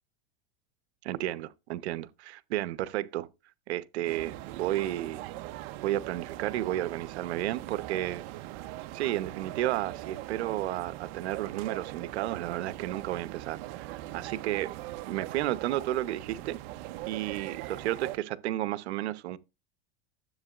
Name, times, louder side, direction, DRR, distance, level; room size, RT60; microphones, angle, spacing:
voice 1, 1.0-3.3 3.7-5.2 5.8-8.2 8.9-14.8 15.1-16.6 17.1-19.4, right 14 dB, 90° right, 0.9 m, -32 dB
sound 1, 4.0-18.2, right 16 dB, 60° right, 0.8 m, -41 dB
13.0 x 7.9 x 2.5 m
supercardioid pair, 130°, 32 cm